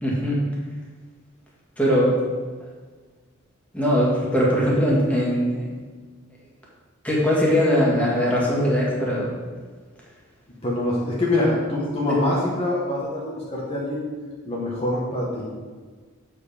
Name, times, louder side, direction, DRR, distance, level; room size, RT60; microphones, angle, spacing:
voice 1, 0.0-0.4 1.8-2.2 3.7-5.7 7.0-9.3 11.3-11.6 12.0-12.2, equal, 5° left, -5 dB, 1.9 m, -21 dB
voice 2, 10.6-14.0 14.4-15.5, left 1 dB, 30° left, -5 dB, 1.2 m, -25 dB
7.6 x 5.0 x 4.9 m, 1.5 s
head